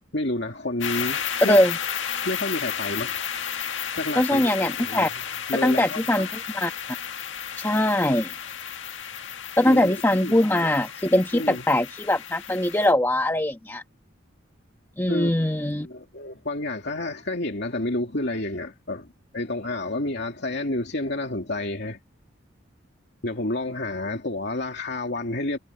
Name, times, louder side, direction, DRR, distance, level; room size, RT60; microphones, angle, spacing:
voice 1, 0.1-1.6 2.2-3.2 4.0-5.1 5.5-6.3 9.7-10.4 11.3-11.6 15.1-15.3 15.7-19.1 19.3-22.0 23.2-25.6, left 2 dB, 60° left, 2.8 m, -30 dB
sound 1, 0.8-12.9, left 8 dB, 75° left, 1.7 m, -33 dB
voice 2, 4.2-5.1 5.6-6.3 6.5-6.7 7.6-8.3 9.6-13.8 15.0-15.9, left 1 dB, 15° left, 1.4 m, -21 dB
head